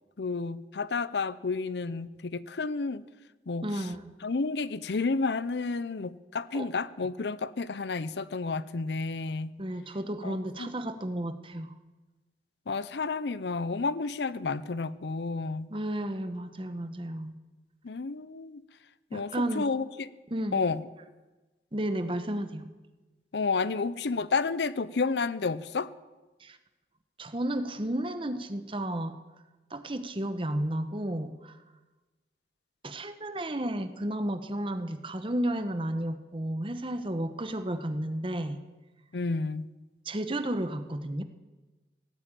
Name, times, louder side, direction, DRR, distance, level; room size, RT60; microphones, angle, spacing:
voice 1, 0.2-3.1 3.5-3.9 4.2-9.6 10.2-10.7 12.7-15.7 17.8-18.6 19.1-20.1 20.5-20.8 23.3-25.9 39.1-39.7, left 4 dB, 80° left, 17 dB, 0.6 m, -31 dB
voice 2, 3.6-4.2 6.5-6.7 9.6-11.7 15.7-17.3 19.1-19.7 20.3-20.6 21.7-22.7 26.4-26.6 27.2-29.2 29.7-31.6 32.8-38.6 40.0-41.2, right 1 dB, 30° right, 10 dB, 1.0 m, -32 dB
17.0 x 8.6 x 8.9 m, 1.2 s
head